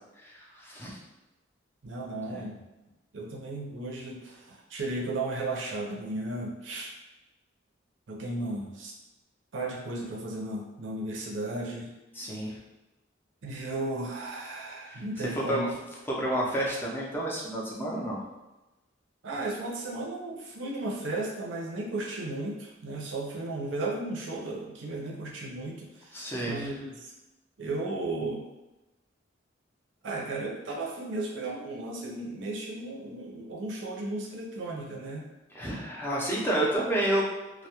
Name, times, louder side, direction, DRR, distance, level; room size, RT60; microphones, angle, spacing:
voice 1, 0.2-1.0 2.2-2.4 12.1-12.6 14.9-15.7 16.1-18.2 26.1-26.8 35.5-37.3, right 1 dB, 10° left, -4 dB, 0.5 m, -30 dB
voice 2, 1.8-2.6 3.1-6.9 8.1-8.9 9.5-11.9 13.4-15.7 19.2-27.1 27.6-28.4 30.0-35.2, right 2 dB, 70° right, -2 dB, 0.5 m, -35 dB
2.2 x 2.0 x 2.8 m, 1.0 s
head